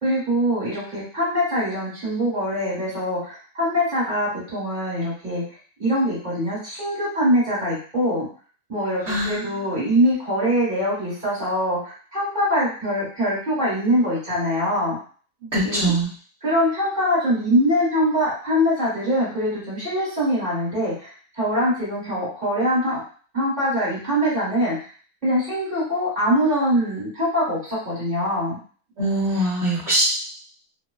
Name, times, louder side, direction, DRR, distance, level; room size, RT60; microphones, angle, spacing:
voice 1, 0.0-5.4 5.8-8.3 8.7-15.0 15.6-15.9 16.4-23.0 23.3-24.8 25.2-28.6, equal, 30° right, -8 dB, 1.3 m, -23 dB
voice 2, 9.1-9.4 15.5-16.1 29.0-30.0, right 1 dB, 55° right, -9 dB, 1.0 m, -22 dB
2.7 x 2.1 x 2.2 m, 0.43 s
omnidirectional pair, 1.6 m